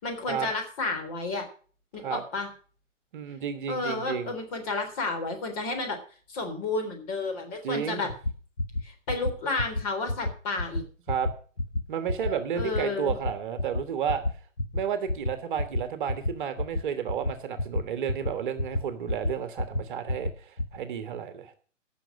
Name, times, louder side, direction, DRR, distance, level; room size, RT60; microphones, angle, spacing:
voice 1, 0.0-1.5 1.9-2.5 3.7-6.0 6.3-8.1 8.8-10.8 12.6-13.1, left 3 dB, 30° left, 4 dB, 3.6 m, -31 dB
voice 2, 3.1-4.3 7.6-8.1 11.1-11.3 11.9-14.2 14.7-21.5, right 8 dB, 40° right, 9 dB, 1.4 m, -32 dB
sound 1, 8.1-8.3 8.6-8.8 9.1-9.3 9.6-9.8 10.1-10.3 10.6-10.8 11.1-11.3 11.6-11.8 12.1-12.3 12.6-12.8 13.1-13.3 13.6-13.8 14.1-14.3 14.6-14.8 15.1-15.3 15.6-15.8 16.1-16.3 16.6-16.8 17.1-17.3 17.6-17.8 18.1-18.3 18.6-18.8 19.1-19.3 19.6-19.8 20.1-20.3 20.6-20.8, left 2 dB, 85° left, 1.8 m, -28 dB
15.5 x 6.4 x 6.4 m, 0.42 s
figure-of-eight pair, 130°, 38 cm